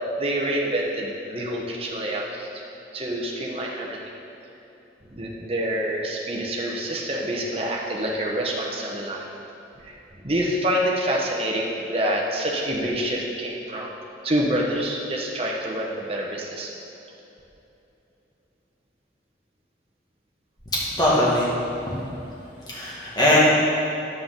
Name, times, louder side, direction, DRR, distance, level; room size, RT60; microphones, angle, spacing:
voice 1, 0.2-2.6 2.9-4.0 5.0-9.2 9.8-13.9 14.2-16.7, right 1 dB, 30° right, -2 dB, 1.1 m, -27 dB
voice 2, 20.7-21.5 21.9-22.0 22.7-23.4, left 1 dB, 20° left, -8 dB, 2.0 m, -21 dB
9.4 x 7.9 x 3.9 m, 2.9 s
head